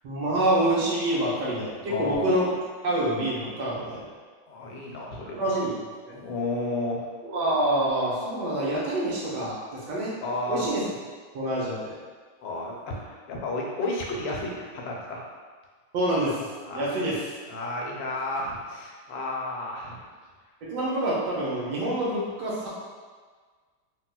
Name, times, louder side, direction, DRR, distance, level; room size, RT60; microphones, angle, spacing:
voice 1, 0.0-2.5 2.8-4.0 5.3-5.8 6.1-6.2 7.3-10.1 10.5-10.9 11.3-12.0 15.9-16.4 16.7-17.2 20.6-22.7, right 1 dB, 70° right, -6 dB, 1.3 m, -26 dB
voice 2, 1.9-2.4 4.5-5.6 6.2-7.0 10.2-10.7 12.4-15.2 16.6-17.1 17.5-20.0, left 2 dB, 90° left, -2 dB, 1.3 m, -32 dB
3.4 x 2.7 x 2.2 m, 1.5 s
omnidirectional pair, 2.0 m